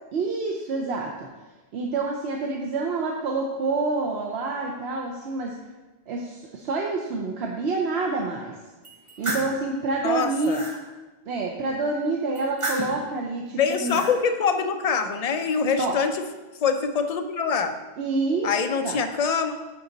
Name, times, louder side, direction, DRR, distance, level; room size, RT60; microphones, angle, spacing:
voice 1, 0.1-1.3 1.7-5.5 6.1-8.6 9.2-10.6 11.3-14.0 15.8-16.0 18.0-18.5 18.8-19.0, right 3 dB, 80° right, 0 dB, 1.0 m, -27 dB
sound 1, 8.8-9.5 10.1-10.8 12.4-13.1 13.6-14.1, right 2 dB, 30° right, 1.1 m, -32 dB
voice 2, 10.0-10.6 13.5-16.1 16.6-17.8 18.4-19.5, left 6 dB, 50° left, 7 dB, 0.5 m, -24 dB
10.0 x 4.0 x 3.9 m, 1.2 s
omnidirectional pair, 1.1 m